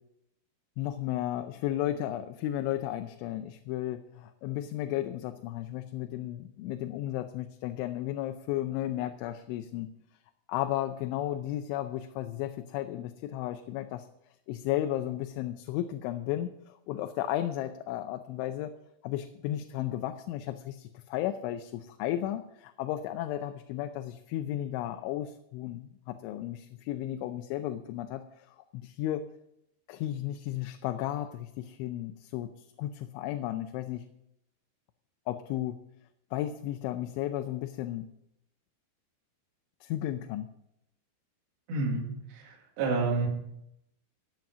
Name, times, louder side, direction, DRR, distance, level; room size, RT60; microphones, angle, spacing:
voice 1, 0.8-9.9 10.5-14.1 14.5-18.7 19.0-29.2 29.9-32.5 32.8-34.0 35.3-35.8 36.3-38.1 39.8-40.5, left 13 dB, 90° left, 7 dB, 3.1 m, -34 dB
voice 2, 41.7-42.1 42.3-43.3, right 3 dB, 70° right, 0 dB, 4.4 m, -29 dB
15.0 x 9.2 x 6.1 m, 0.80 s
omnidirectional pair, 5.3 m